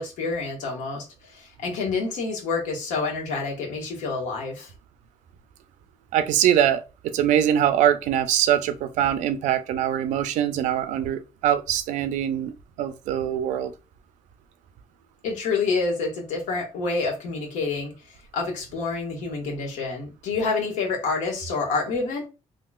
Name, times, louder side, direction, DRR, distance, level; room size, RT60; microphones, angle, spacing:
voice 1, 0.0-4.7 15.2-22.3, left 4 dB, 90° left, 1.3 m, -28 dB
voice 2, 6.1-13.7, right 10 dB, 85° right, 0.4 m, -23 dB
3.7 x 2.3 x 2.3 m
cardioid pair, 110°, 12 cm